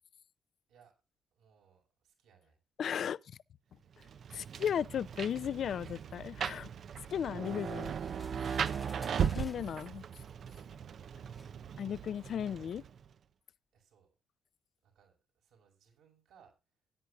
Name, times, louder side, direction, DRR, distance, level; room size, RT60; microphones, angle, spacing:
voice 1, 1.3-2.6 3.7-3.9 12.2-12.5 13.7-14.1 14.8-16.8, right 7 dB, 85° right, 6.0 m, -66 dB
voice 2, 2.8-3.2 4.3-6.7 7.1-7.9 9.4-10.0 11.8-12.8, left 8 dB, 60° left, 0.5 m, -35 dB
Rain, 4.0-13.1, right 7 dB, 55° right, 0.5 m, -38 dB
sound 1, 7.4-9.7 10.6-10.7 11.3-11.5, left 2 dB, 20° left, 1.0 m, -55 dB
18.5 x 10.5 x 2.5 m
cardioid pair, 90°, 0 cm